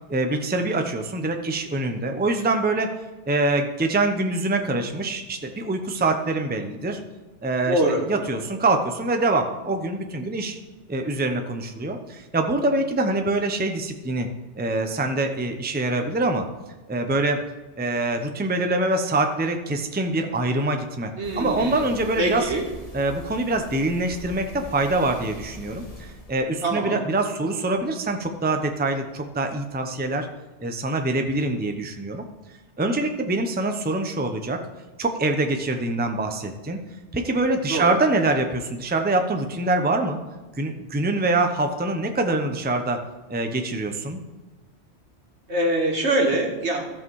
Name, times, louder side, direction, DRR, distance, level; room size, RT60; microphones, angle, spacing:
voice 1, 0.1-3.0 3.3-7.0 7.4-7.8 8.1-10.6 10.9-14.3 14.6-16.5 16.9-17.4 17.8-22.5 22.9-30.3 30.6-32.2 32.8-34.6 35.0-36.8 37.1-40.2 40.6-43.0 43.3-44.2, right 2 dB, 10° right, 5 dB, 0.7 m, -24 dB
voice 2, 7.6-8.0 21.2-21.8 22.2-22.6 26.6-27.0 37.7-37.9 45.5-46.8, right 1 dB, 70° right, 1 dB, 2.1 m, -23 dB
sound 1, 21.2-26.3, left 2 dB, 35° left, 1.4 m, -42 dB
15.0 x 5.7 x 4.7 m, 1.2 s
omnidirectional pair, 1.2 m